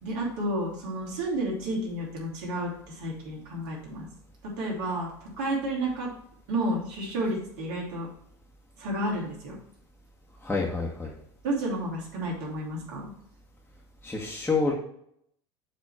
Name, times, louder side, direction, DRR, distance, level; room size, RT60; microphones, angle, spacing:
voice 1, 0.0-4.1 4.4-6.1 6.5-8.1 8.8-9.6 11.4-13.1, right 1 dB, 65° right, -2 dB, 3.0 m, -31 dB
voice 2, 10.4-11.1 14.0-14.7, left 4 dB, 10° left, -3 dB, 1.4 m, -27 dB
7.2 x 3.7 x 6.1 m, 0.72 s
hypercardioid pair, 85°, 13 cm